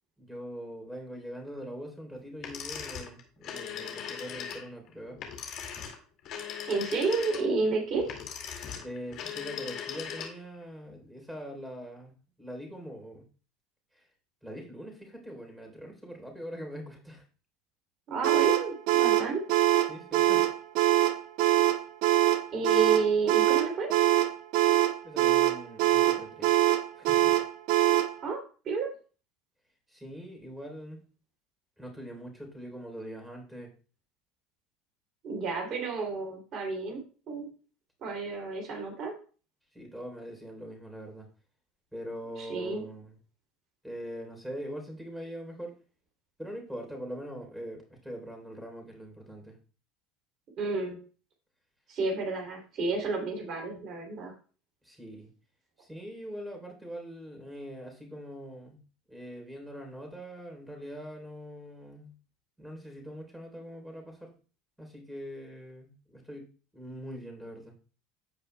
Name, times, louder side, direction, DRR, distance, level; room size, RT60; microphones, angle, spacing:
voice 1, 0.2-5.2 8.8-13.3 13.9-14.0 14.4-17.2 19.9-20.5 25.0-26.5 26.9-27.4 29.9-31.0 31.8-33.7 39.7-41.3 41.9-43.2 43.8-45.7 46.4-49.6 54.8-55.3 55.8-58.8 59.1-62.1 62.6-64.3 64.8-67.7, equal, 5° right, 2 dB, 3.4 m, -42 dB
sound 1, 2.4-10.6, left 8 dB, 55° left, 2.1 m, -39 dB
voice 2, 6.7-8.1 18.1-19.4 22.5-23.9 28.2-28.4 28.6-28.9 35.2-37.0 37.3-37.5 38.0-39.1 42.5-42.8 50.6-51.0 51.9-54.3, right 4 dB, 50° right, 0 dB, 2.8 m, -30 dB
sound 2, 18.2-28.2, right 14 dB, 70° right, 0.6 m, -24 dB
14.5 x 5.0 x 2.2 m, 0.37 s
hypercardioid pair, 90°, 0 cm